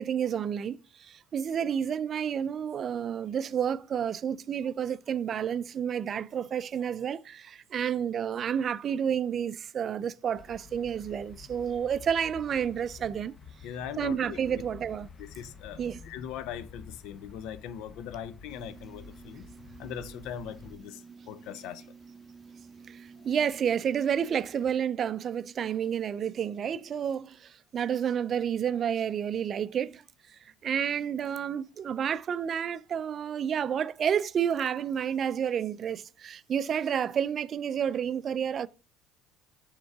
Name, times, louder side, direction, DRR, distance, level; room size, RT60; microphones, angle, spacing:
voice 1, 0.0-13.3 14.0-15.1 15.8-16.0 22.9-23.0 23.2-30.0 30.6-38.7, right 8 dB, 45° right, 0.4 m, -30 dB
sound 1, 10.3-20.8, left 5 dB, 35° left, 0.9 m, -50 dB
voice 2, 13.6-14.6 15.2-19.4 19.8-21.8, left 9 dB, 70° left, 0.7 m, -40 dB
sound 2, 18.5-24.8, right 5 dB, 15° right, 0.7 m, -51 dB
6.9 x 3.7 x 4.7 m
hypercardioid pair, 70°, 0 cm